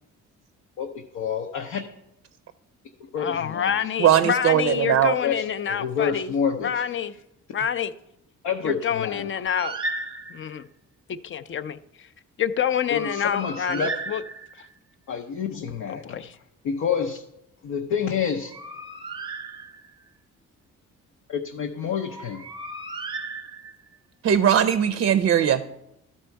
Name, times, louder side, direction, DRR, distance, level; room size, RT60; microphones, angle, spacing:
voice 1, 0.8-1.8 3.0-3.7 5.2-6.8 8.4-9.2 12.9-13.9 15.1-16.2 16.6-17.2 17.6-18.5 21.3-22.5, left 7 dB, 80° left, 0.7 m, -28 dB
voice 2, 3.2-6.3 6.6-7.1 7.5-7.9 8.6-9.8 10.3-10.7 11.1-12.1 12.4-14.2 14.6-14.7 15.9-16.3, left 9 dB, 40° left, 0.4 m, -27 dB
voice 3, 4.0-5.1 24.2-25.6, right 9 dB, 50° right, 0.5 m, -19 dB
Bird, 9.5-10.6 12.7-14.8 18.2-20.1 22.0-23.9, right 3 dB, 15° right, 0.7 m, -35 dB
12.5 x 4.3 x 4.5 m
cardioid pair, 90°, 30 cm